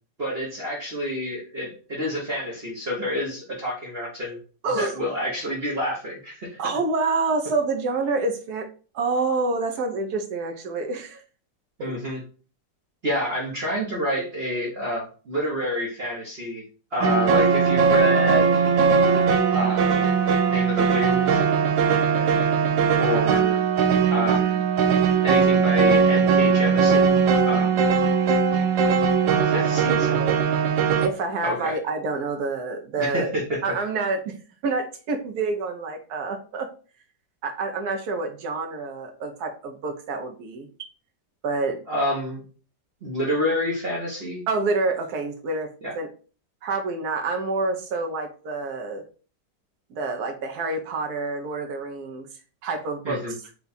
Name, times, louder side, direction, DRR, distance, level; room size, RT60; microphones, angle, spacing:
voice 1, 0.2-4.4 4.7-6.6 11.8-12.2 13.0-16.6 16.9-18.6 19.5-20.2 20.4-21.4 22.1-22.3 23.0-23.6 24.1-24.6 25.2-27.2 27.4-27.8 29.4-30.3 31.4-31.8 33.0-33.6 41.9-42.4 43.0-44.4 45.8-45.9 53.0-53.3, left 1 dB, 40° right, -4 dB, 1.0 m, -28 dB
voice 2, 6.6-8.7 8.9-11.2 11.8-11.9 29.4-30.4 31.0-33.3 33.6-34.3 34.6-36.7 37.4-40.7 41.4-41.8 44.5-45.7 45.9-46.1 46.6-49.0 49.9-52.3 52.6-53.3, right 3 dB, 65° right, 4 dB, 1.2 m, -27 dB
sound 1, 17.0-31.1, right 6 dB, 85° right, 1.3 m, -20 dB
4.5 x 2.3 x 4.0 m, 0.37 s
omnidirectional pair, 1.9 m